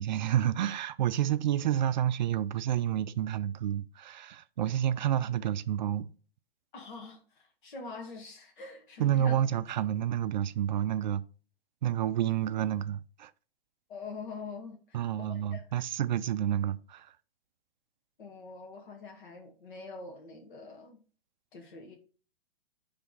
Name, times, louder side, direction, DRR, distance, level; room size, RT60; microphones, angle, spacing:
voice 1, 0.0-6.1 9.0-11.2 11.8-13.3 14.9-17.1, right 11 dB, 50° right, 0.5 m, -29 dB
voice 2, 6.7-9.3 13.9-15.6 18.2-21.0 21.5-21.9, left 4 dB, 55° left, 1.7 m, -44 dB
9.7 x 3.5 x 4.0 m
figure-of-eight pair, 115°, 30 cm